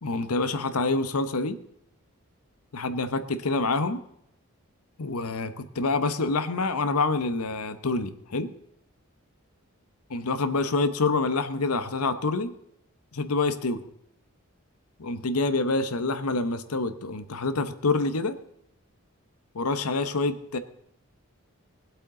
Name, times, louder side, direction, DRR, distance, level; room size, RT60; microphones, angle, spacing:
voice 1, 0.0-1.6 2.7-4.0 5.0-8.5 10.1-12.5 13.1-13.8 15.0-18.4 19.5-20.6, left 3 dB, 85° left, 11 dB, 0.9 m, -27 dB
20.5 x 8.1 x 3.8 m, 0.77 s
head